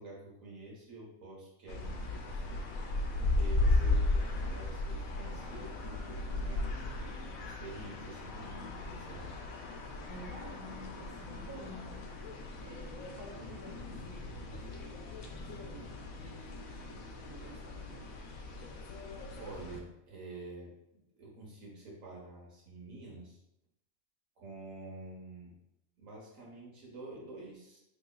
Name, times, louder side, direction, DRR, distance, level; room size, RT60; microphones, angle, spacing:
voice 1, 0.0-2.6 3.2-6.8 7.6-9.5 19.4-23.4 24.4-25.5 26.0-27.8, right 2 dB, 70° right, -3 dB, 1.5 m, -48 dB
sound 1, 1.7-19.8, left 2 dB, 85° left, 1.0 m, -36 dB
voice 2, 10.1-12.1 12.6-14.9 15.3-15.9 16.2-18.1, equal, 20° right, -2 dB, 0.5 m, -51 dB
3.9 x 3.4 x 2.2 m, 0.83 s
omnidirectional pair, 1.4 m